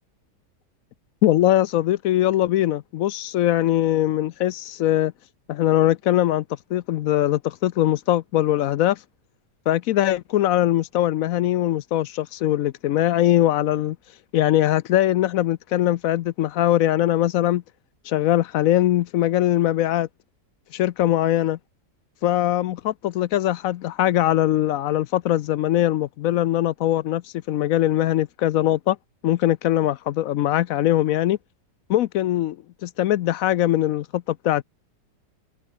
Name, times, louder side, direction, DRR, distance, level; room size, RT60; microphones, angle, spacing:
voice 1, 1.2-5.1 5.5-6.4 6.7-9.0 9.7-14.0 14.3-17.6 18.0-20.1 20.7-21.6 22.2-29.0 29.2-31.4 31.9-32.6 32.8-34.6, left 13 dB, 70° left, 0.8 m, -21 dB
omnidirectional pair, 1.8 m